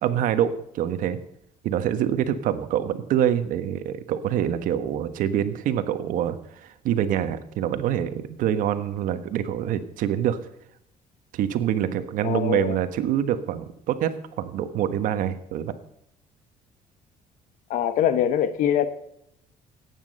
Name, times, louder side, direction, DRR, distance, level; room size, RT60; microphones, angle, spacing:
voice 1, 0.0-1.2 1.6-10.4 11.3-15.7, right 10 dB, 70° right, 11 dB, 1.3 m, -25 dB
voice 2, 12.2-12.8 17.7-18.9, left 9 dB, 70° left, 12 dB, 1.3 m, -23 dB
14.5 x 9.6 x 5.4 m, 0.77 s
cardioid pair, 145°, 14 cm